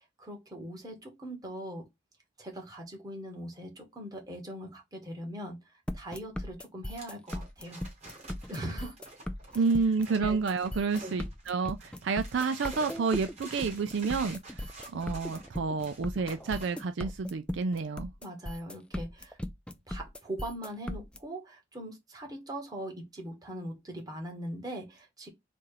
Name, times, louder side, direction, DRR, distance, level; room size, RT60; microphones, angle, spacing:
voice 1, 0.2-1.9 2.4-5.6 5.9-7.8 8.5-9.0 10.2-10.4 11.0-11.2 18.2-19.4 19.9-25.3, right 1 dB, 20° right, 1.4 m, -41 dB
sound 1, 5.9-21.2, left 1 dB, 5° left, 0.3 m, -38 dB
sound 2, 6.9-11.4 11.8-16.8, right 2 dB, 35° right, 1.9 m, -48 dB
voice 2, 9.5-14.6 14.9-18.1, right 4 dB, 65° right, 0.4 m, -30 dB
4.2 x 2.5 x 4.8 m
head